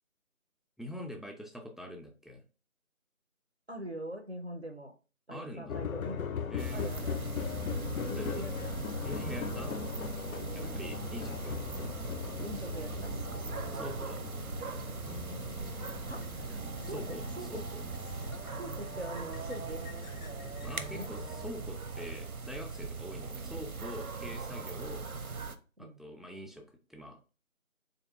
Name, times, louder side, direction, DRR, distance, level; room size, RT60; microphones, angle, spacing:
voice 1, 0.8-2.4 5.3-5.8 6.5-6.9 8.0-8.4 9.0-9.7 10.5-11.6 13.7-14.2 16.8-17.2 17.5-17.6 20.6-25.1 25.8-26.6 26.9-27.2, equal, ahead, 2 dB, 0.4 m, -44 dB
voice 2, 3.7-4.9 5.3-6.3 6.7-7.3 8.0-8.7 10.6-10.8 12.4-13.1 16.1-17.6 18.6-19.8 20.9-21.1 25.8-26.0, right 1 dB, 55° right, 4 dB, 0.5 m, -43 dB
sound 1, 5.7-21.5, left 7 dB, 85° left, 0.5 m, -40 dB
sound 2, 6.6-25.6, right 4 dB, 90° right, 0.7 m, -40 dB
3.8 x 2.8 x 3.4 m, 0.34 s
figure-of-eight pair, 180°, 41 cm